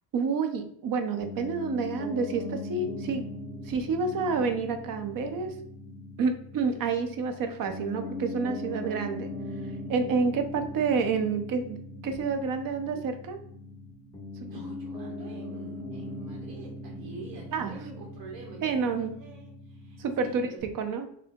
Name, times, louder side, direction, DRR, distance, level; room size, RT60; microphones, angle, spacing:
voice 1, 0.1-3.3 3.6-5.6 6.2-13.4 14.3-14.5 17.5-17.8 18.6-19.1 20.0-21.1, right 5 dB, 45° right, 7 dB, 0.6 m, -29 dB
Piano, 1.2-20.6, left 1 dB, 10° left, 0.3 m, -40 dB
voice 2, 14.4-20.6, right 3 dB, 60° right, -1 dB, 0.9 m, -46 dB
3.3 x 2.9 x 3.4 m, 0.68 s
cardioid pair, 145°, 50 cm